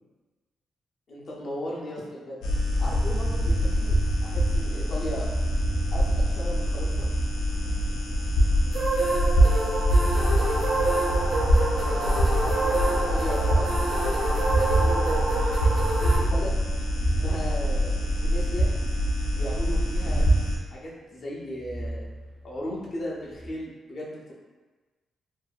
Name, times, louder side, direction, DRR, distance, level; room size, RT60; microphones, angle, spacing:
voice 1, 1.1-2.4 2.8-5.3 5.9-7.1 11.7-15.6 16.1-16.6 17.1-18.7 19.3-20.2 20.7-22.0 22.4-24.3, left 1 dB, 45° left, -4 dB, 0.6 m, -36 dB
sound 1, 2.4-20.6, equal, 90° left, 0.3 m, -24 dB
sound 2, 5.3-5.8 6.6-7.4 8.3-9.0 9.6-10.6 11.6-12.2 12.6-13.5 14.5-17.2 18.5-19.1 19.9-20.4 21.6-22.8 23.3-23.5, right 1 dB, 20° right, 0.4 m, -35 dB
sound 3, 8.7-16.2, right 2 dB, 75° right, 0.7 m, -27 dB
2.6 x 2.5 x 2.2 m, 1.3 s
wide cardioid pair, 155°, 0 cm